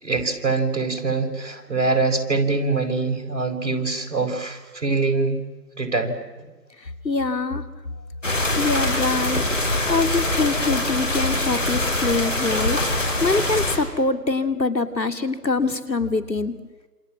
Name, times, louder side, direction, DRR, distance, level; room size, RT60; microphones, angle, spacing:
voice 1, 0.0-5.4 5.8-6.2 9.8-9.9, right 3 dB, 45° right, 3 dB, 5.3 m, -24 dB
voice 2, 7.0-7.6 8.6-9.4 9.9-12.8 13.2-16.5, left 3 dB, 80° left, 9 dB, 2.8 m, -24 dB
sound 1, 8.2-13.8, left 1 dB, 45° left, 5.5 m, -23 dB
28.0 x 27.5 x 7.5 m, 1.2 s
figure-of-eight pair, 175°, 50 cm